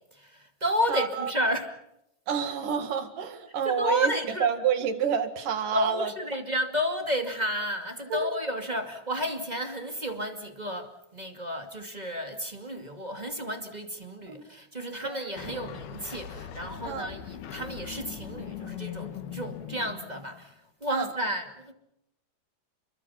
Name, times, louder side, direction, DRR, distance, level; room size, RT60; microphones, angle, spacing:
voice 1, 0.1-1.7 3.6-4.5 5.7-20.5 20.8-21.7, equal, 15° right, 1.6 m, -32 dB
voice 2, 0.9-1.5 2.3-6.1 8.1-8.4 14.3-14.4 15.0-15.2 16.8-17.1 20.9-21.1, right 7 dB, 60° right, 3.5 m, -29 dB
sound 1, 15.4-20.5, left 9 dB, 75° left, 3.5 m, -40 dB
29.5 x 23.0 x 5.8 m
omnidirectional pair, 4.5 m